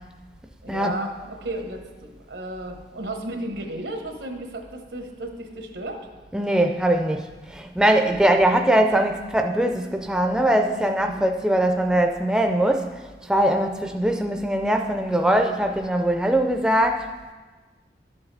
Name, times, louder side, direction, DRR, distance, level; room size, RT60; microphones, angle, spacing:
voice 1, 0.6-6.1 8.0-8.3 11.0-11.2, right 1 dB, 90° right, 3 dB, 1.2 m, -34 dB
voice 2, 6.3-12.9 13.3-17.1, right 1 dB, 5° right, 4 dB, 0.3 m, -21 dB
11.0 x 7.1 x 3.4 m, 1.3 s
head